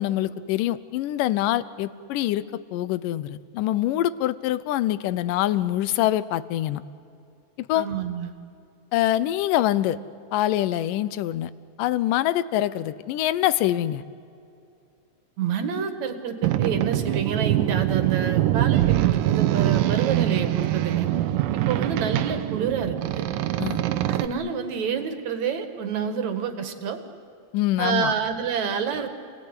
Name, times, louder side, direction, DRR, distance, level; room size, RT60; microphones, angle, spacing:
voice 1, 0.0-2.4 2.7-6.8 7.7-7.9 8.9-10.0 10.3-11.5 11.8-14.0 23.6-23.8 27.5-28.1, left 13 dB, 85° left, 16 dB, 2.4 m, -24 dB
voice 2, 7.7-8.3 15.4-21.1 21.7-23.2 24.1-27.0 27.8-29.1, right 7 dB, 60° right, 8 dB, 3.0 m, -28 dB
Boat Water vehicle, 16.4-24.3, right 13 dB, 85° right, 2.5 m, -23 dB
29.0 x 19.0 x 9.9 m, 2.5 s
omnidirectional pair, 3.7 m